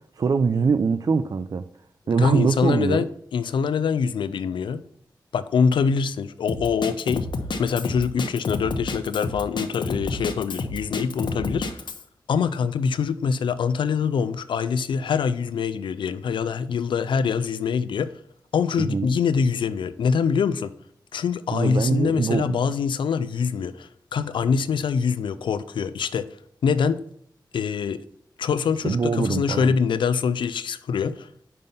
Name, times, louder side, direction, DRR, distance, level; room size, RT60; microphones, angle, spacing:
voice 1, 0.1-1.6 2.1-3.1 18.8-19.1 21.5-22.6 28.8-29.8, right 5 dB, 50° right, 0.4 m, -23 dB
voice 2, 2.2-3.1 3.3-4.8 5.3-7.3 7.6-11.8 12.3-18.2 18.5-20.7 21.1-26.3 26.6-27.0 27.5-28.0 28.4-31.3, left 6 dB, 90° left, 0.4 m, -24 dB
Drum kit, 6.5-12.0, left 3 dB, 70° left, 0.8 m, -29 dB
5.4 x 5.3 x 5.5 m
cardioid pair, 65°, 8 cm